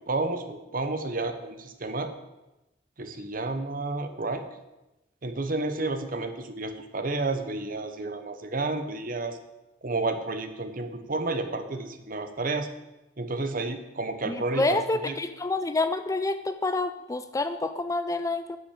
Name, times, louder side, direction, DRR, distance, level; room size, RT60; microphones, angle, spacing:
voice 1, 0.1-2.1 3.0-4.4 5.2-9.4 9.8-12.7 13.2-14.8 15.1-15.2, right 3 dB, 50° right, 8 dB, 1.0 m, -31 dB
voice 2, 14.2-18.6, left 2 dB, 15° left, 11 dB, 0.4 m, -28 dB
10.0 x 6.1 x 8.6 m, 1.0 s
head